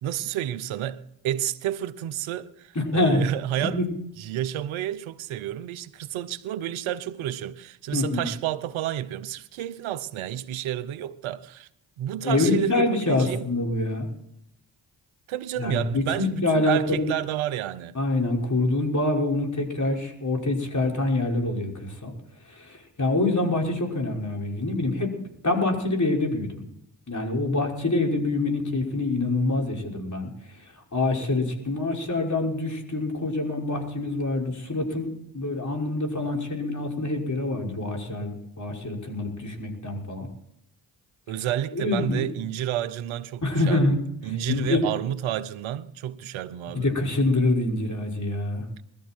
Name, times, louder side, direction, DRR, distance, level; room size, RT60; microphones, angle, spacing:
voice 1, 0.0-3.8 4.2-11.7 12.0-13.4 15.3-18.0 41.3-44.0 44.2-46.9, right 11 dB, 90° right, 0.9 m, -30 dB
voice 2, 2.7-3.2 3.7-3.9 7.9-8.3 12.2-14.1 15.6-17.1 17.9-22.1 22.5-25.1 25.4-26.6 27.1-40.3 41.7-42.3 43.4-44.0 44.5-44.9 46.7-48.7, left 2 dB, 40° left, 5.8 m, -25 dB
20.5 x 14.0 x 4.6 m
supercardioid pair, 45°, 46 cm